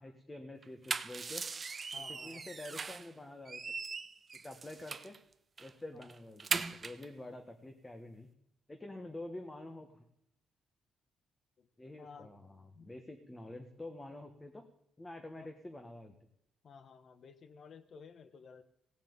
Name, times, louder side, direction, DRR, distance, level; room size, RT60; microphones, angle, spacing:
voice 1, 0.0-1.4 2.1-3.6 4.4-5.1 5.6-8.3 8.7-10.0 11.8-14.6 15.0-16.1, left 1 dB, 15° left, 5 dB, 1.4 m, -47 dB
sound 1, 0.6-3.1 3.5-5.2 5.6-5.7 6.0-7.1, right 4 dB, 30° right, 0.7 m, -39 dB
voice 2, 1.9-2.5 5.9-6.1 11.6-12.3 12.7-12.9 15.4-15.5 16.6-18.6, left 5 dB, 50° left, 13 dB, 1.2 m, -54 dB
16.5 x 7.2 x 8.8 m, 0.77 s
cardioid pair, 125°, 0 cm